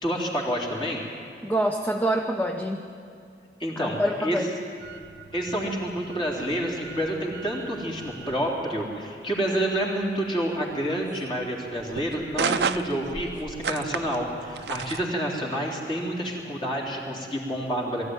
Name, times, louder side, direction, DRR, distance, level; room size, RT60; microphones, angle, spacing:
voice 1, 0.0-1.0 3.6-4.4 5.3-18.0, equal, 30° left, -2 dB, 3.5 m, -28 dB
voice 2, 1.4-2.9 3.8-4.5, right 1 dB, 10° left, 2 dB, 0.7 m, -26 dB
sound 1, 4.8-15.0, right 6 dB, 70° right, 0.6 m, -35 dB
22.0 x 14.5 x 9.4 m, 2.4 s
head